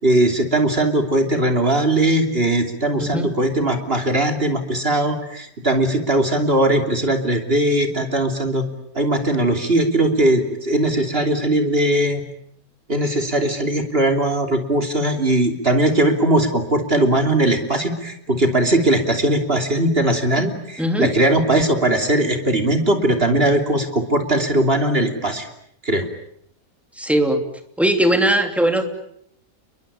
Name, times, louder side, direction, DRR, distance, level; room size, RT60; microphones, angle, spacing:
voice 1, 0.0-8.6 8.9-12.2 12.9-25.5 25.8-26.1, right 1 dB, 35° right, 5 dB, 3.3 m, -19 dB
voice 2, 20.8-21.1 27.0-27.4 27.8-28.8, right 1 dB, ahead, 6 dB, 3.0 m, -19 dB
30.0 x 22.5 x 8.8 m, 0.70 s
omnidirectional pair, 1.8 m